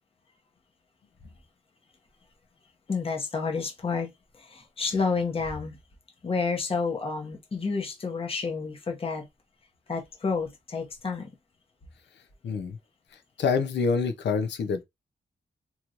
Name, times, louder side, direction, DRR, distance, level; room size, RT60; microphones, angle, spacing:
voice 1, 2.9-4.1 4.4-5.8 6.2-9.3 9.9-11.3, left 4 dB, 30° left, 0.9 m, -30 dB
voice 2, 12.4-12.8 13.4-14.8, left 5 dB, 85° left, 0.7 m, -26 dB
3.0 x 2.9 x 2.5 m
wide cardioid pair, 135°, 18 cm